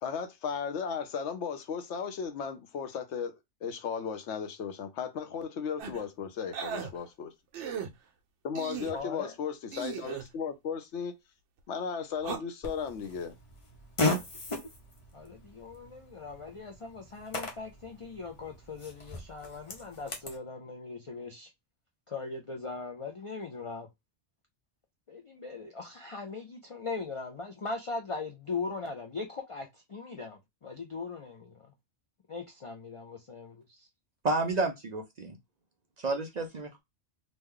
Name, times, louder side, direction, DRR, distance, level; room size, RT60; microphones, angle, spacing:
voice 1, 0.0-7.3 8.4-11.1 11.7-13.3, left 6 dB, 75° left, 0.9 m, -35 dB
sound 1, 5.8-6.0 6.5-6.9 7.5-7.9 8.5-9.0 9.7-10.3 12.2-12.4, right 7 dB, 75° right, 0.9 m, -37 dB
voice 2, 8.9-9.3 15.1-21.5 22.1-23.9 25.1-31.7 32.3-33.9, left 4 dB, 55° left, 0.3 m, -40 dB
Fart, 12.6-20.4, left 2 dB, 30° left, 0.7 m, -37 dB
voice 3, 34.2-35.4 36.0-36.8, right 2 dB, 55° right, 0.5 m, -30 dB
3.0 x 2.1 x 3.6 m
omnidirectional pair, 1.2 m